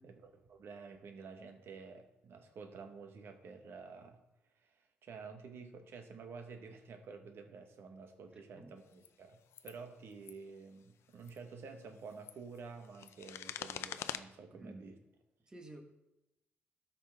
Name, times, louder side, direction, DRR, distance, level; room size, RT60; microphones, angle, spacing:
voice 1, 0.0-4.2 4.6-15.0, right 5 dB, 65° right, 6 dB, 1.3 m, -50 dB
voice 2, 8.3-8.8 14.5-15.0 15.5-15.8, right 1 dB, 20° right, 4 dB, 1.4 m, -53 dB
sound 1, 8.9-9.1 9.5-9.8 10.1-10.3 11.1-11.4 12.0-14.2, left 10 dB, 80° left, 0.5 m, -44 dB
13.0 x 5.7 x 3.6 m, 0.92 s
cardioid pair, 120°, 4 cm